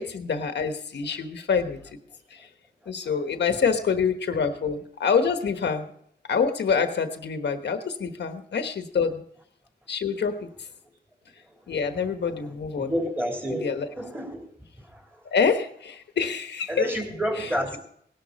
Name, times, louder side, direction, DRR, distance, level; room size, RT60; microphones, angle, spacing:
voice 1, 0.0-1.8 2.3-2.5 2.9-5.9 6.3-9.2 9.9-10.5 11.7-12.9 13.5-13.9 15.3-16.9 17.4-17.8, left 6 dB, 75° left, 7 dB, 1.3 m, -26 dB
voice 2, 12.9-14.5 16.7-17.8, equal, 10° right, 1 dB, 3.4 m, -29 dB
18.0 x 11.5 x 4.2 m, 0.67 s
wide cardioid pair, 160°, 18 cm